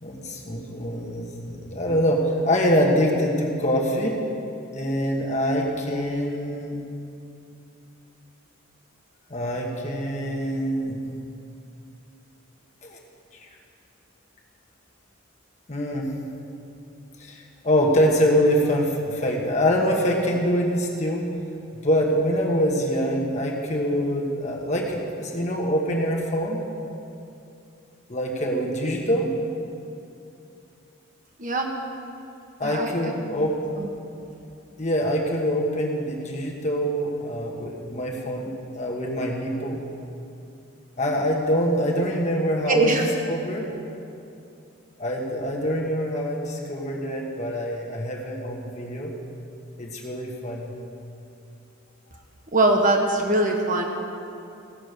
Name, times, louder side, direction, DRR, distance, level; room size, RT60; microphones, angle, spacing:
voice 1, 0.0-4.2 4.7-6.8 9.3-11.0 12.8-13.0 13.3-13.4 15.7-16.1 17.2-21.3 21.7-26.6 28.1-29.3 32.6-33.6 34.8-39.8 41.0-43.0 43.3-43.7 45.0-49.1 49.8-50.7, equal, 35° left, -1 dB, 1.3 m, -25 dB
voice 2, 31.4-31.7 32.6-33.1 33.4-33.5 33.8-33.9 42.7-43.1 52.5-53.9, right 2 dB, 40° right, 2 dB, 1.2 m, -22 dB
16.0 x 6.1 x 6.6 m, 2.6 s
head